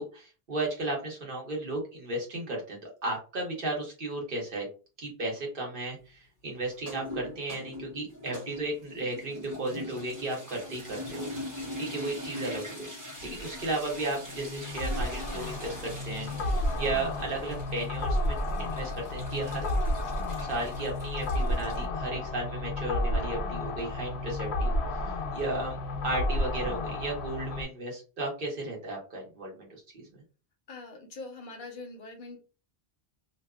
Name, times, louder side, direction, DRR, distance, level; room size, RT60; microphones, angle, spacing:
voice 1, 0.0-4.7 5.0-11.3 11.8-12.9 13.2-19.8 20.4-25.8 26.0-30.2, right 2 dB, 55° right, -1 dB, 1.2 m, -35 dB
sound 1, 6.7-21.8, left 1 dB, 20° right, 1.0 m, -42 dB
sound 2, 13.2-27.6, left 1 dB, 85° left, 0.9 m, -32 dB
voice 2, 30.7-32.4, left 3 dB, 55° left, 5 dB, 0.7 m, -43 dB
2.6 x 2.4 x 2.3 m, 0.33 s
omnidirectional pair, 1.1 m